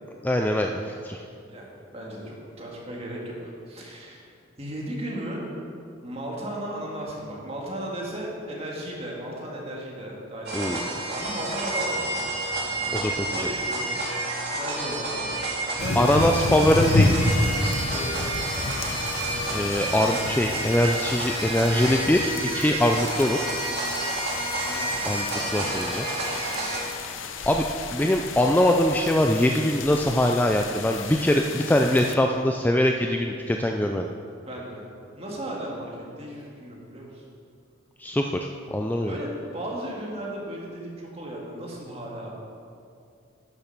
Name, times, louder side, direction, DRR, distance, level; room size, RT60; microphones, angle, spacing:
voice 1, 0.2-1.2 10.5-10.9 12.9-13.5 16.0-17.2 19.5-23.5 25.1-26.1 27.5-27.6 27.9-34.1 38.0-39.1, left 1 dB, 10° left, 3 dB, 0.3 m, -23 dB
voice 2, 1.5-3.4 3.7-4.3 4.6-5.5 6.0-12.3 12.6-13.1 13.3-14.0 14.6-16.5 17.6-18.4 24.7-26.1 26.4-26.7 34.4-34.8 35.1-35.9 36.2-37.2 39.0-42.4, right 1 dB, 30° right, -3 dB, 2.1 m, -36 dB
sound 1, 10.5-26.8, right 2 dB, 55° right, 2.2 m, -30 dB
sound 2, 15.8-32.1, left 3 dB, 70° left, 0.7 m, -31 dB
10.5 x 7.1 x 6.0 m, 2.4 s
head